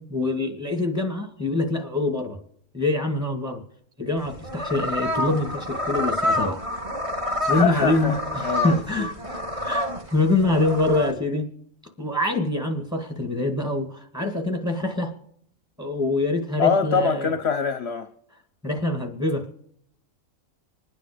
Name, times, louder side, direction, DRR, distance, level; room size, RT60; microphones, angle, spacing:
voice 1, 0.0-2.4 2.7-3.6 4.0-6.6 7.4-9.1 9.6-11.5 12.0-15.1 15.8-17.3 18.6-19.5, left 2 dB, 5° right, 1.9 m, -25 dB
sound 1, 4.2-11.1, left 1 dB, 25° right, 1.4 m, -28 dB
voice 2, 7.5-9.1 16.6-18.1, left 6 dB, 55° left, 0.9 m, -24 dB
26.0 x 9.7 x 5.0 m
omnidirectional pair, 1.5 m